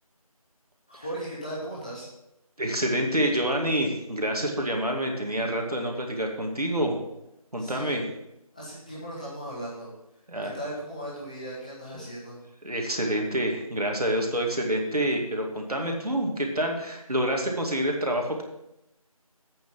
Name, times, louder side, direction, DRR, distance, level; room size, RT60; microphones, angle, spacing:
voice 1, 0.9-2.1 7.6-8.0 8.5-9.9 10.4-12.4, right 1 dB, 10° left, -7 dB, 1.3 m, -37 dB
voice 2, 2.6-7.0 7.5-8.0 10.3-10.5 11.9-12.0 12.6-18.4, right 1 dB, 80° right, 1 dB, 2.4 m, -27 dB
8.7 x 6.8 x 6.1 m, 0.86 s
figure-of-eight pair, 170°, 19 cm